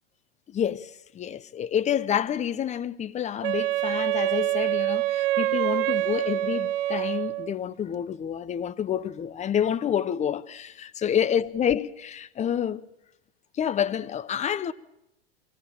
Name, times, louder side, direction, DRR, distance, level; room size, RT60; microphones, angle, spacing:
voice 1, 0.5-12.8 13.5-14.7, left 9 dB, 25° left, 0.7 m, -28 dB
Wind instrument woodwind instrument, 3.4-7.5, right 16 dB, 60° right, 0.7 m, -26 dB
23.5 x 17.5 x 7.1 m
hypercardioid pair, 100°, 30 cm